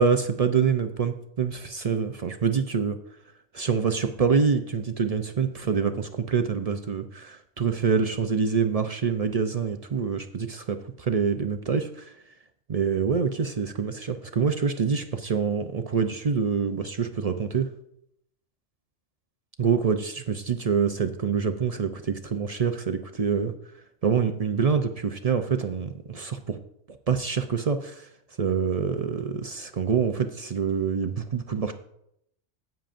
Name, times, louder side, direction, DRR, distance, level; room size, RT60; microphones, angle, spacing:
voice 1, 0.0-3.0 3.5-12.1 12.7-17.7 19.6-23.5 24.0-26.6 27.1-28.1 28.4-31.7, right 6 dB, 50° right, 7 dB, 0.4 m, -26 dB
15.0 x 8.8 x 2.6 m, 0.76 s
omnidirectional pair, 1.3 m